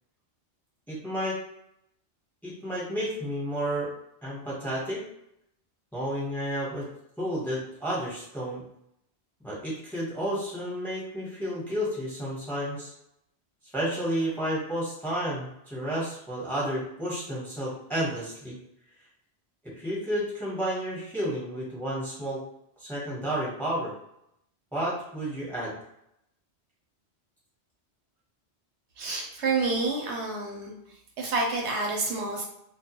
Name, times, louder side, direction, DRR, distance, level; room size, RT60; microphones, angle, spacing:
voice 1, 0.9-1.4 2.4-3.9 4.2-5.0 5.9-6.9 7.2-8.6 9.4-12.9 13.7-18.6 19.6-22.4 22.8-23.9 24.7-25.8, equal, ahead, -6 dB, 0.8 m, -31 dB
voice 2, 29.0-30.7 31.2-32.4, right 3 dB, 80° right, 0 dB, 1.0 m, -28 dB
2.3 x 2.2 x 2.9 m, 0.78 s
omnidirectional pair, 1.2 m